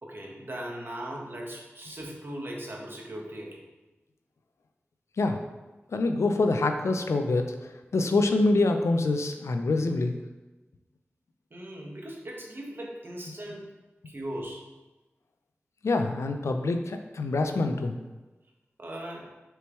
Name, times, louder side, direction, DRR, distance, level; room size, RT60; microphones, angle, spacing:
voice 1, 0.0-3.6 11.5-13.7 14.0-14.7 18.8-19.3, right 1 dB, 50° right, -1 dB, 1.3 m, -39 dB
voice 2, 5.9-7.5 7.9-10.2 15.8-18.0, left 2 dB, 85° left, 6 dB, 0.5 m, -25 dB
6.7 x 4.6 x 3.1 m, 1.1 s
cardioid pair, 45°, 5 cm